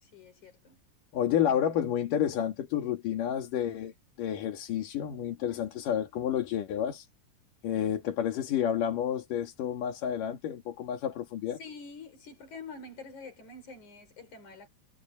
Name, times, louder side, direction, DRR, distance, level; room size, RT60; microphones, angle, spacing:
voice 1, 0.1-0.8 11.6-14.7, left 4 dB, 65° left, 6.5 m, -46 dB
voice 2, 1.1-7.1 7.6-11.6, left 10 dB, 90° left, 3.7 m, -30 dB
omnidirectional pair, 3.6 m